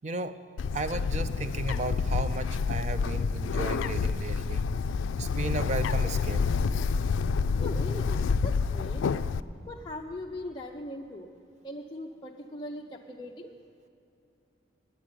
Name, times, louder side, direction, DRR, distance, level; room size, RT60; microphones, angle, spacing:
voice 1, 0.0-0.4 0.7-4.7 5.2-6.4, right 2 dB, 35° right, 11 dB, 0.5 m, -34 dB
Bird, 0.6-9.4, left 5 dB, 85° left, 0.3 m, -28 dB
voice 2, 7.6-9.0 9.7-11.3 11.6-13.5, left 1 dB, 25° left, -2 dB, 0.5 m, -40 dB
10.0 x 8.8 x 9.4 m, 2.7 s
head